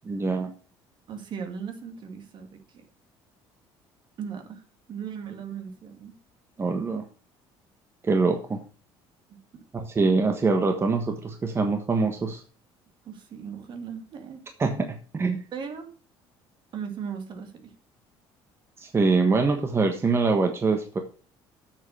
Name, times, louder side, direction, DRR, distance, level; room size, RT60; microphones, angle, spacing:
voice 1, 0.0-0.5 6.6-7.0 8.0-8.6 9.7-12.4 14.6-15.4 18.8-21.0, right 4 dB, 25° right, 5 dB, 1.4 m, -24 dB
voice 2, 1.1-2.9 4.2-4.6 4.9-6.1 9.3-9.6 13.0-14.4 15.5-15.9 16.7-17.7, right 7 dB, 50° right, 6 dB, 2.3 m, -38 dB
8.0 x 6.7 x 6.6 m, 0.39 s
cardioid pair, 105°, 10 cm